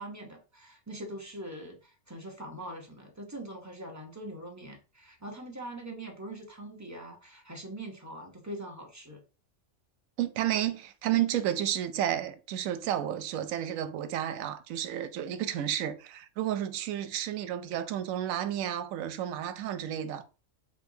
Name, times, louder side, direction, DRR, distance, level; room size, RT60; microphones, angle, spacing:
voice 1, 0.0-9.2, right 1 dB, 20° right, 0.6 m, -42 dB
voice 2, 10.2-20.2, right 11 dB, 85° right, 1.0 m, -31 dB
5.1 x 2.9 x 2.7 m
omnidirectional pair, 1.4 m